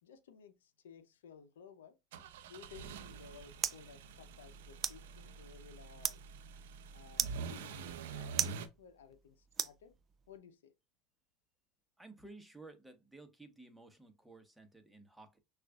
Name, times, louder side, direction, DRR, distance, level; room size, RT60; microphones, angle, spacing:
voice 1, 0.0-2.0 2.5-6.2 6.9-9.9 10.3-10.7, left 7 dB, 90° left, 0.6 m, -57 dB
sound 1, 2.1-8.7, right 5 dB, 80° right, 0.6 m, -46 dB
sound 2, 2.8-10.4, right 8 dB, 35° right, 0.4 m, -42 dB
voice 2, 12.0-15.4, right 2 dB, 5° right, 1.1 m, -55 dB
6.3 x 2.5 x 2.3 m
hypercardioid pair, 100°, 0 cm